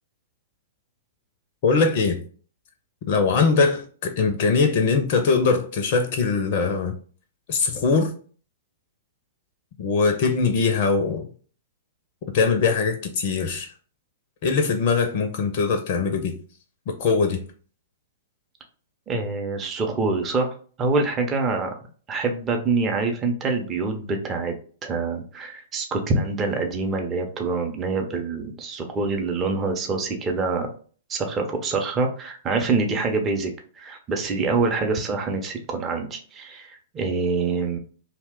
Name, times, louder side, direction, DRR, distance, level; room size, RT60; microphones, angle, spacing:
voice 1, 1.6-2.2 3.1-6.9 7.5-8.1 9.8-11.2 12.3-13.7 14.4-16.3 17.0-17.4, left 4 dB, 45° left, 0.4 m, -21 dB
voice 2, 19.1-20.5 20.8-21.7 22.1-24.5 24.8-30.7 31.1-33.5 33.8-37.8, right 3 dB, 20° right, 0.5 m, -25 dB
2.8 x 2.1 x 3.4 m
figure-of-eight pair, 110°, 0 cm